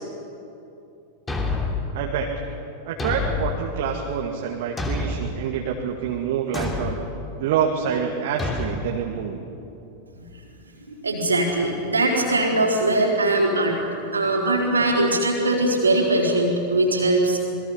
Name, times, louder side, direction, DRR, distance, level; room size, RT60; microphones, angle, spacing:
Thump thud, 1.3-1.9 3.0-3.6 4.8-5.3 6.5-7.0 8.4-8.7, left 3 dB, 15° left, 3.0 m, -27 dB
voice 1, 1.9-2.3 2.8-7.0 7.4-9.4, right 7 dB, 50° right, 1 dB, 2.0 m, -27 dB
voice 2, 10.9-17.4, right 2 dB, 75° right, 0 dB, 4.0 m, -21 dB
27.5 x 21.5 x 5.7 m, 2.7 s
figure-of-eight pair, 90°, 0 cm